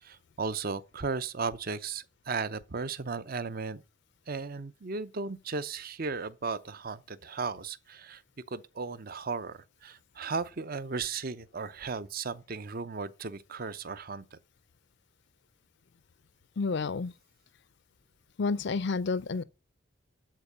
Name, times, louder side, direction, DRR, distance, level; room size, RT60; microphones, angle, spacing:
voice 1, 0.0-3.8 4.3-8.2 8.5-14.4, right 4 dB, 45° right, 0.6 m, -36 dB
voice 2, 16.6-17.1 18.4-19.4, left 4 dB, 55° left, 0.5 m, -30 dB
12.0 x 4.5 x 6.7 m
head